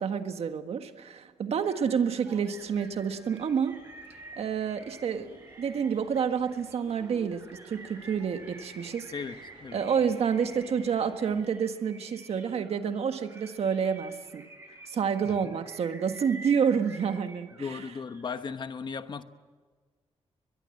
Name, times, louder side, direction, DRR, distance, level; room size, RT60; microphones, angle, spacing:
voice 1, 0.0-3.8 4.4-9.1 9.7-14.5 14.9-17.8, right 7 dB, 70° right, 7 dB, 1.6 m, -29 dB
sound 1, 1.6-18.4, right 2 dB, 25° right, 6.8 m, -50 dB
sound 2, 2.2-11.5, right 2 dB, 45° right, 5.8 m, -54 dB
voice 2, 17.6-19.2, left 5 dB, 45° left, 10 dB, 1.1 m, -36 dB
23.0 x 22.0 x 7.9 m, 1.5 s
wide cardioid pair, 130°, 11 cm